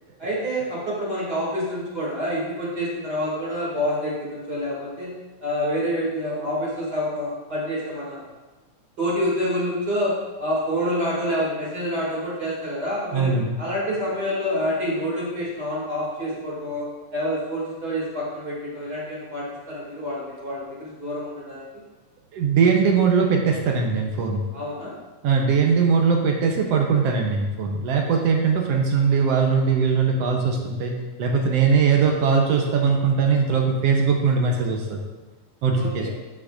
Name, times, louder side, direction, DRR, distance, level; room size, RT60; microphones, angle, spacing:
voice 1, 0.2-5.1 5.4-8.2 9.0-10.1 10.4-13.3 13.6-21.7 24.5-24.9 35.7-36.1, equal, 35° right, -7 dB, 2.8 m, -27 dB
voice 2, 13.1-13.6 22.3-24.4 25.2-30.9 31.2-35.0 35.6-36.1, right 5 dB, 70° right, 1 dB, 1.7 m, -20 dB
11.5 x 5.7 x 2.5 m, 1.3 s
omnidirectional pair, 3.4 m